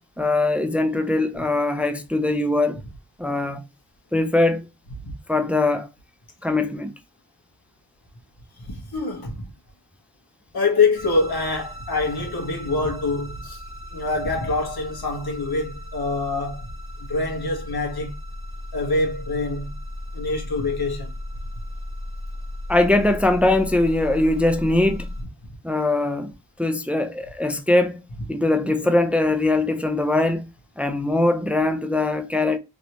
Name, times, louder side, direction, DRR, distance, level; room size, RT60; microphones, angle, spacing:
voice 1, 0.2-2.8 3.2-3.6 4.1-4.7 5.3-5.9 6.4-6.9 22.7-25.1 25.6-26.3 26.6-28.0 28.3-30.4 30.8-32.6, left 2 dB, 5° right, 0.4 m, -21 dB
voice 2, 8.6-9.5 10.5-13.6 13.9-16.7 17.0-18.1 18.7-19.8 20.1-21.1, left 3 dB, 65° left, 1.4 m, -25 dB
sound 1, 11.0-25.2, left 1 dB, 30° left, 0.9 m, -36 dB
3.0 x 3.0 x 2.9 m
cardioid pair, 50°, 40 cm